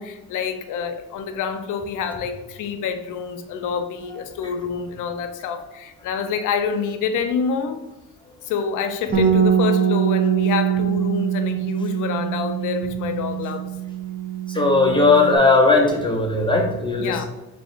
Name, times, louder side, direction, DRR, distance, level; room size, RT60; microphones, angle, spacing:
voice 1, 0.0-7.8 8.4-13.7 17.0-17.2, left 6 dB, 80° left, 7 dB, 0.6 m, -27 dB
Bass guitar, 9.1-15.4, right 8 dB, 35° right, 1.0 m, -23 dB
voice 2, 14.5-17.2, left 3 dB, 15° left, 0 dB, 0.6 m, -17 dB
3.5 x 3.2 x 4.2 m, 1.0 s
cardioid pair, 90°, 30 cm